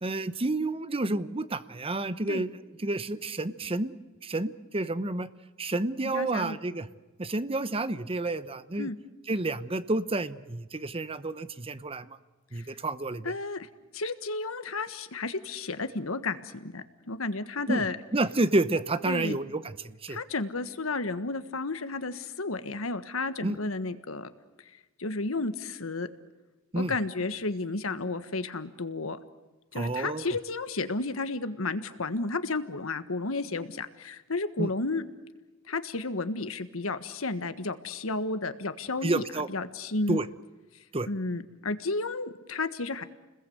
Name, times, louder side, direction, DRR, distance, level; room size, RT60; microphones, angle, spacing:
voice 1, 0.0-3.9 4.2-5.3 5.6-6.9 7.2-8.9 9.3-12.2 12.5-13.3 17.7-17.8 18.1-20.2 23.4-23.6 26.7-26.9 29.7-30.3 34.6-34.7 39.0-39.5 40.1-40.3 40.9-41.1, right 2 dB, 30° right, 13 dB, 1.0 m, -30 dB
voice 2, 6.1-6.6 8.8-9.0 12.5-12.7 13.2-13.7 13.9-18.0 19.0-19.4 20.1-24.3 25.0-26.1 26.7-29.2 29.7-35.0 35.7-40.2 41.1-43.0, left 3 dB, 85° left, 11 dB, 1.5 m, -32 dB
29.5 x 21.0 x 8.0 m, 1.1 s
head